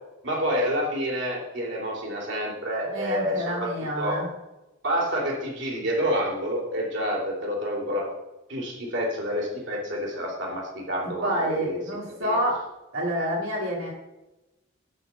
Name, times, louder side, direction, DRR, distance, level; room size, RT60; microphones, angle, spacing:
voice 1, 0.2-3.7 4.0-4.2 4.8-8.1 8.5-11.8 12.2-12.4, equal, 60° right, -3 dB, 3.1 m, -28 dB
voice 2, 2.9-4.3 11.2-12.7 12.9-13.9, equal, 90° right, -3 dB, 2.9 m, -28 dB
12.0 x 4.5 x 7.0 m, 1.0 s
head